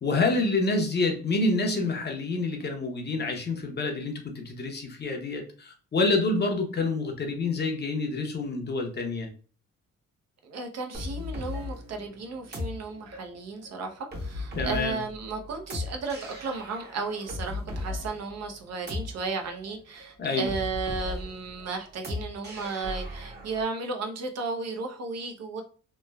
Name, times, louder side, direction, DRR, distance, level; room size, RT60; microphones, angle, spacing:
voice 1, 0.0-9.3 14.5-15.0 20.2-20.5, left 3 dB, 35° left, 0.7 m, -27 dB
voice 2, 10.4-25.6, right 4 dB, 60° right, 0.6 m, -34 dB
sound 1, 10.9-23.6, left 2 dB, 35° right, 0.9 m, -37 dB
3.1 x 2.1 x 2.2 m
cardioid pair, 90°, 30 cm